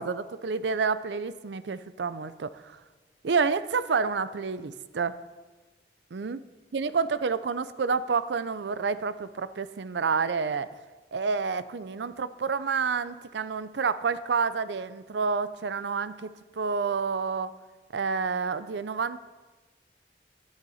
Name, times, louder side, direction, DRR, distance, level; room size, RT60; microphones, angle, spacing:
voice 1, 0.0-2.8 3.2-5.2 6.1-6.4 6.7-10.7 11.1-17.5 17.9-19.2, right 5 dB, 80° right, 15 dB, 0.5 m, -29 dB
10.5 x 9.2 x 5.6 m, 1.2 s
head